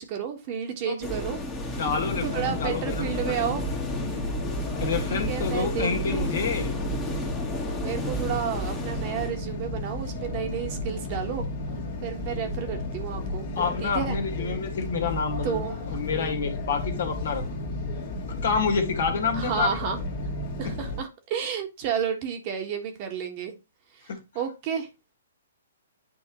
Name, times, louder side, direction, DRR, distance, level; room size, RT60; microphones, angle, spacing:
voice 1, 0.0-1.4 1.7-1.8 2.2-3.7 5.0-6.3 7.8-11.4 12.0-13.5 13.8-14.2 15.4-15.7 19.3-20.0 20.6-23.5 24.3-24.9, right 8 dB, 40° right, 1.5 m, -31 dB
sound 1, 1.0-9.3, left 1 dB, 15° left, 1.5 m, -33 dB
voice 2, 1.7-3.5 4.8-6.8 13.6-15.6 15.9-17.4 18.4-19.7 20.6-20.7 24.1-24.2, left 5 dB, 60° left, 1.9 m, -28 dB
sound 2, 1.8-21.0, left 1 dB, 45° left, 1.9 m, -33 dB
9.3 x 3.6 x 3.1 m
figure-of-eight pair, 125°, 0 cm